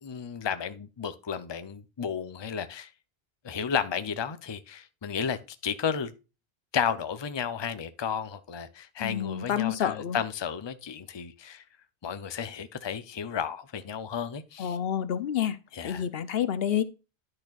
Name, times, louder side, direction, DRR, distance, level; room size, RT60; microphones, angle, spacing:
voice 1, 0.0-2.9 3.4-6.1 6.7-11.6 12.0-14.8 15.7-16.0, left 7 dB, 30° left, 0.6 m, -33 dB
voice 2, 9.0-10.2 14.6-15.6 15.8-16.8, left 9 dB, 70° left, 0.9 m, -28 dB
10.5 x 6.5 x 2.4 m
omnidirectional pair, 1.1 m